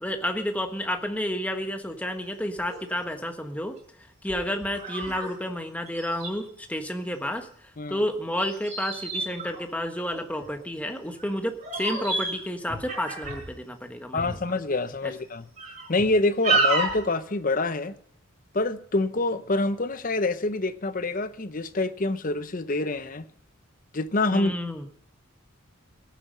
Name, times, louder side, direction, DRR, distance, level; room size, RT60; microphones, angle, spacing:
voice 1, 0.0-3.7 4.2-7.5 7.9-14.4 15.0-15.1 24.3-24.9, left 1 dB, 5° left, 1.3 m, -30 dB
sound 1, 2.6-2.8 3.3-3.4 4.3-5.3 5.6-5.7 5.9-6.3 8.4-10.5 11.2-11.3 11.6-12.4 12.7-13.5 14.2-14.4 14.9-15.0 15.6-16.1 16.4-17.0, right 3 dB, 30° right, 5.8 m, -29 dB
voice 2, 14.1-15.4 15.9-18.0 18.5-23.3 23.9-24.5, left 2 dB, 40° left, 0.8 m, -26 dB
17.0 x 9.2 x 5.5 m
head